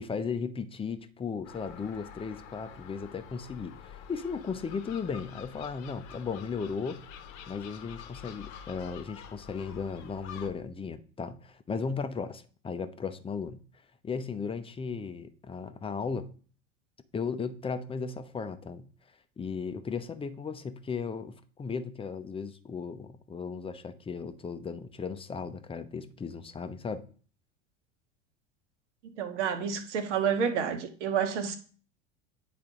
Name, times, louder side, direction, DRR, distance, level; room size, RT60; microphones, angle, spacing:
voice 1, 0.0-7.0 7.5-13.6 14.0-16.3 17.1-18.9 19.4-27.1, left 5 dB, 15° left, 0.6 m, -36 dB
Gull seagull, 1.4-10.5, left 7 dB, 50° left, 0.9 m, -47 dB
voice 2, 29.0-31.6, right 7 dB, 70° right, 1.2 m, -29 dB
8.9 x 4.1 x 3.7 m
hypercardioid pair, 80°, 37 cm